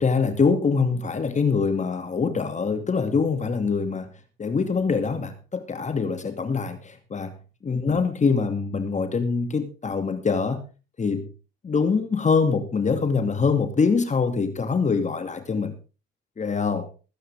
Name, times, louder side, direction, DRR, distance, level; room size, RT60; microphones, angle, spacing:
voice 1, 0.0-4.1 4.4-7.4 7.6-10.7 11.0-11.3 11.6-15.8 16.4-16.9, left 5 dB, 35° left, 2.4 m, -24 dB
21.0 x 9.3 x 3.6 m
cardioid pair, 90°, 20 cm